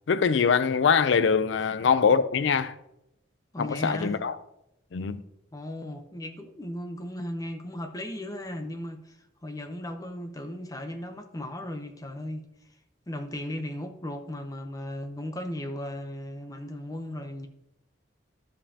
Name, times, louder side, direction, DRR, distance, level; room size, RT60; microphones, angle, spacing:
voice 1, 0.1-2.7 3.6-4.4 4.9-5.2, left 6 dB, 75° left, 0.4 m, -23 dB
voice 2, 3.5-4.2 5.5-12.5 13.1-17.5, left 1 dB, 20° left, 0.7 m, -36 dB
12.5 x 5.4 x 2.8 m
head